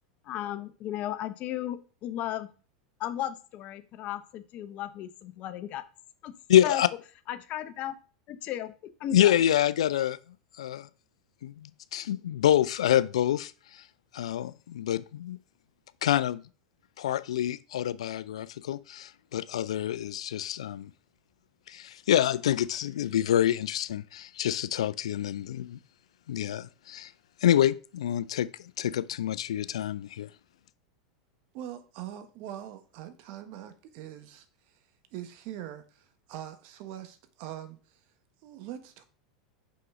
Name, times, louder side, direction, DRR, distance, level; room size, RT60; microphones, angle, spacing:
voice 1, 0.3-2.5 3.0-5.8 6.2-6.3 6.6-6.8 7.3-7.9 8.3-8.7 9.0-9.3, left 12 dB, 45° left, 0.7 m, -35 dB
voice 2, 6.5-6.9 9.1-10.2 10.6-10.9 11.4-13.8 14.1-15.4 16.0-16.4 17.0-20.9 21.7-25.8 26.3-27.1 27.4-28.5 28.8-30.3, left 11 dB, 75° left, 0.3 m, -27 dB
voice 3, 31.5-34.8 35.1-38.0 38.4-39.0, right 11 dB, 55° right, 1.1 m, -43 dB
5.5 x 5.3 x 3.7 m
hypercardioid pair, 95°, 3 cm